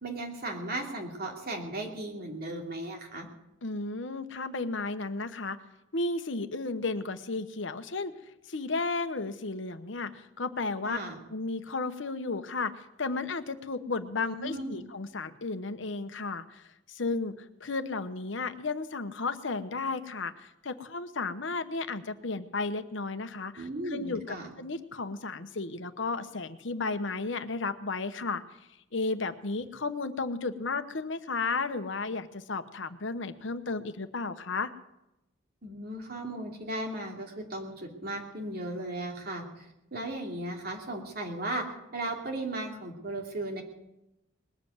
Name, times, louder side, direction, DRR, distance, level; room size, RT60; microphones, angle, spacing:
voice 1, 0.0-3.3 10.8-11.2 14.3-14.9 23.6-24.5 35.6-41.7 41.9-43.6, right 1 dB, 50° right, 2 dB, 2.8 m, -36 dB
voice 2, 3.6-5.6 5.9-8.1 8.5-11.0 11.3-17.3 17.6-28.4 28.9-34.7, left 3 dB, 70° left, 10 dB, 1.0 m, -33 dB
20.5 x 7.6 x 9.3 m, 0.90 s
head